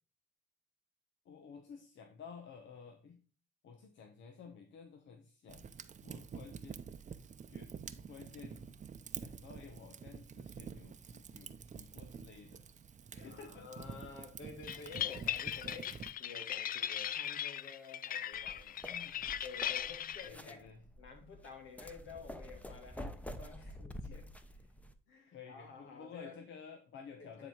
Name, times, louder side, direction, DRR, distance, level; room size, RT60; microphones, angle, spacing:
voice 1, 1.3-3.2 3.6-5.7 6.0-6.8 7.5-7.7 8.1-8.8 9.1-12.6 13.1-14.0 18.9-19.3 20.2-20.8 21.2-21.3 23.6-23.7 24.1-24.2 25.3-27.5, left 6 dB, 70° left, 1.2 m, -53 dB
Fire, 5.5-16.1, right 6 dB, 35° right, 0.7 m, -48 dB
voice 2, 13.2-18.8 19.4-20.7 21.0-24.3 25.1-26.4 27.2-27.5, left 4 dB, 85° left, 2.7 m, -51 dB
sound 1, 14.6-20.3, left 10 dB, 45° left, 0.4 m, -39 dB
sound 2, 18.3-24.9, left 1 dB, 5° left, 0.9 m, -48 dB
9.9 x 4.2 x 4.7 m
cardioid pair, 90°, 20 cm